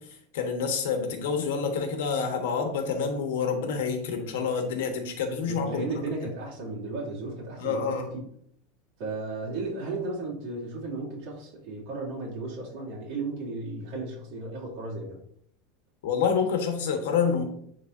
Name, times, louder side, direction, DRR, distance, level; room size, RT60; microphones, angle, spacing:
voice 1, 0.3-5.8 7.6-8.0 16.0-17.4, left 6 dB, 80° left, 5 dB, 1.3 m, -27 dB
voice 2, 5.5-8.0 9.0-15.2, right 3 dB, 50° right, -4 dB, 2.7 m, -34 dB
10.5 x 3.8 x 2.7 m, 0.69 s
supercardioid pair, 170°, 0 cm